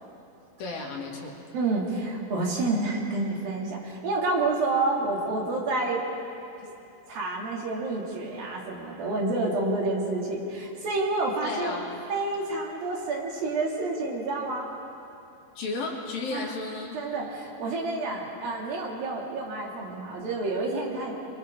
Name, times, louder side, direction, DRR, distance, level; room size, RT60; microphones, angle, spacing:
voice 1, 0.6-1.3 5.5-5.6 6.6-6.7 11.4-12.0 15.6-17.0, left 3 dB, 70° left, -2 dB, 4.1 m, -34 dB
voice 2, 1.5-6.0 7.1-11.8 12.1-14.7 16.3-16.5 16.9-21.1, right 2 dB, 75° right, -2 dB, 4.4 m, -29 dB
28.5 x 24.5 x 3.8 m, 2.7 s
omnidirectional pair, 4.2 m